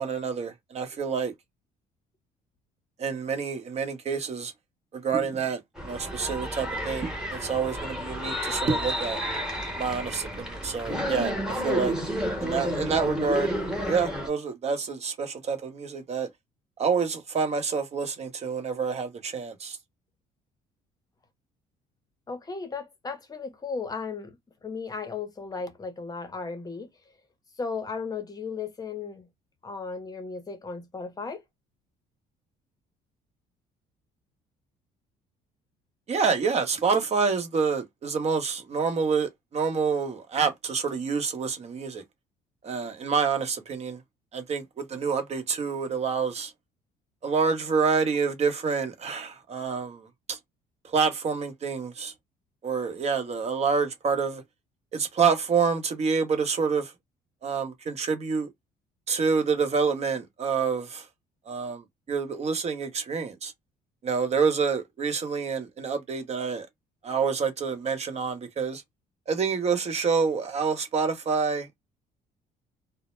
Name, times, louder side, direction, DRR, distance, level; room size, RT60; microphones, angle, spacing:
voice 1, 0.0-1.3 3.0-4.5 4.9-9.2 9.8-12.0 12.4-13.5 13.9-16.3 16.8-19.8 36.1-42.0 42.6-44.0 44.3-46.5 47.2-50.4 50.8-52.1 52.6-54.4 54.9-56.9 57.4-58.5 59.1-61.1 61.5-63.5 64.0-66.7 67.0-68.8 69.3-71.9, right 5 dB, 40° right, 0.8 m, -27 dB
sound 1, 5.8-14.3, equal, 5° right, 1.0 m, -31 dB
voice 2, 22.3-26.9 27.5-29.3 29.6-31.4, left 4 dB, 20° left, 0.7 m, -35 dB
2.1 x 2.0 x 2.9 m
cardioid pair, 110°, 17 cm